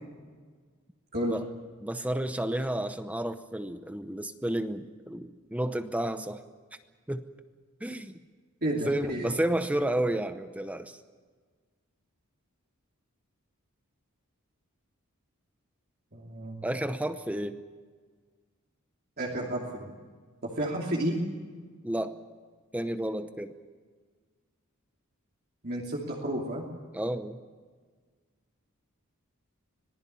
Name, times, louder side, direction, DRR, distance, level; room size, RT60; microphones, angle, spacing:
voice 1, 1.8-6.4 7.1-7.2 7.8-8.2 8.9-11.0 16.6-17.6 21.8-22.1 22.7-23.5 26.9-27.4, right 1 dB, 5° right, 9 dB, 0.8 m, -31 dB
voice 2, 8.6-9.3 16.1-16.6 19.2-19.9 20.4-21.2 25.6-26.7, right 1 dB, 45° right, -3 dB, 3.0 m, -31 dB
26.0 x 19.5 x 7.1 m, 1.5 s
head